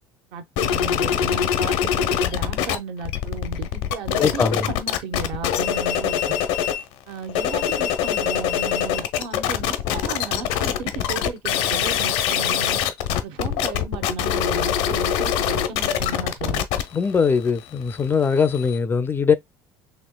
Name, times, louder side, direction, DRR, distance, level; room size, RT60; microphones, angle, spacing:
voice 1, 0.3-6.4 7.1-12.8 13.2-16.6, right 6 dB, 75° right, 0.8 m, -34 dB
sound 1, 0.6-2.8 3.0-6.8 7.2-18.8, left 10 dB, 80° left, 0.6 m, -24 dB
voice 2, 4.2-4.7 16.9-19.3, left 5 dB, 20° left, 0.3 m, -21 dB
4.3 x 2.9 x 2.2 m
cardioid pair, 120°, 10 cm